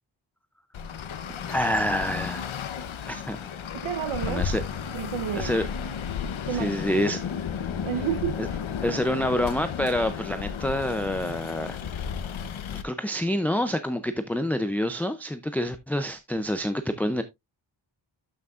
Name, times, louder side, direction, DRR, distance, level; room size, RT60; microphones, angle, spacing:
Traffic noise roadway noise, 0.7-12.8, left 7 dB, 80° left, 1.0 m, -33 dB
voice 1, 1.5-2.5 3.1-3.4 4.3-4.6 5.4-5.7 6.5-7.2 8.4-8.5 8.8-11.8 12.7-17.2, left 1 dB, 5° left, 0.4 m, -27 dB
voice 2, 3.7-4.5 4.9-5.6 6.4-6.8 7.8-8.6, right 9 dB, 90° right, 1.0 m, -30 dB
12.5 x 6.0 x 2.4 m
wide cardioid pair, 175°, 46 cm